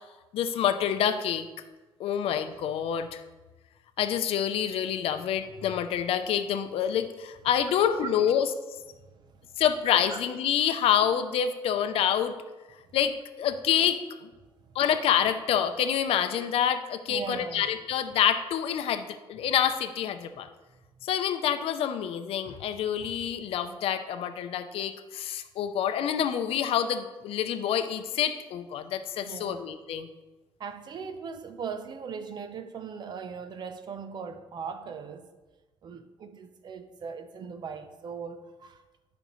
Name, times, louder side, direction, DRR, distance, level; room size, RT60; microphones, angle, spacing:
voice 1, 0.3-1.5 2.0-3.2 4.0-8.5 9.6-12.3 12.9-14.3 14.7-20.5 21.0-30.1, left 9 dB, 75° left, 0.6 m, -27 dB
voice 2, 7.8-8.1 9.1-9.3 9.8-10.2 14.7-14.8 17.1-17.6 29.2-29.7 30.6-35.3 35.8-38.8, right 6 dB, 45° right, 0.6 m, -39 dB
11.5 x 5.3 x 3.1 m
cardioid pair, 125°, 10 cm